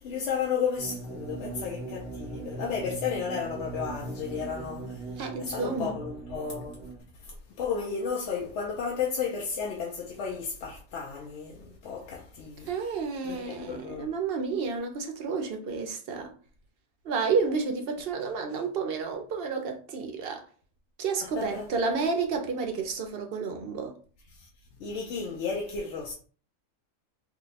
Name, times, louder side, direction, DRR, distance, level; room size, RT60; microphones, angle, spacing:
voice 1, 0.0-5.0 5.4-6.8 7.2-7.3 7.6-12.7 13.2-14.1 21.2-21.7 24.4-24.5 24.8-26.1, left 6 dB, 65° left, 0.8 m, -33 dB
sound 1, 0.8-7.0, right 3 dB, ahead, 0.6 m, -39 dB
voice 2, 5.2-5.9 12.7-16.3 17.0-20.4 21.0-23.9, right 5 dB, 55° right, 0.7 m, -30 dB
2.8 x 2.2 x 3.9 m
omnidirectional pair, 1.4 m